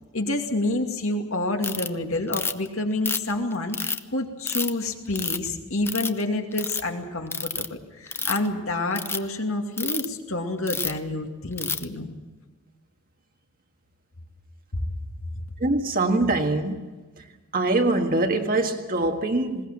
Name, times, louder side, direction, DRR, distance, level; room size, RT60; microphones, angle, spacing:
voice 1, 0.1-12.1, left 2 dB, 65° left, 3 dB, 2.5 m, -28 dB
Ratchet pawl, 1.6-1.9 2.3-2.7 3.1-4.0 4.4-4.7 5.2-5.5 5.9-6.2 6.5-6.8 7.3-7.7 8.1-8.5 8.9-9.2 9.8-10.1 10.7-11.0 11.6-11.8, left 4 dB, 10° left, 0.6 m, -28 dB
voice 2, 15.6-16.9 17.5-19.7, right 2 dB, 40° right, 5 dB, 1.6 m, -23 dB
20.5 x 18.5 x 7.6 m, 1.3 s
head